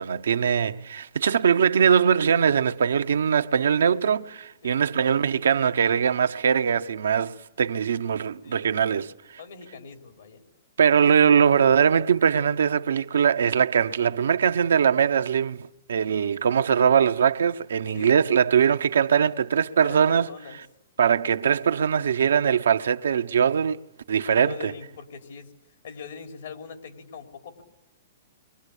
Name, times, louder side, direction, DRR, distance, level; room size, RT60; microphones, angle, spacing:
voice 1, 0.0-9.1 10.8-20.3 21.0-23.8 24.1-24.7, right 7 dB, 85° right, 0.9 m, -21 dB
voice 2, 8.4-9.0 9.4-10.4 17.9-18.2 19.8-20.6 24.3-25.5 25.8-27.6, left 6 dB, 75° left, 4.4 m, -41 dB
29.5 x 23.5 x 8.4 m
hypercardioid pair, 145°, 0 cm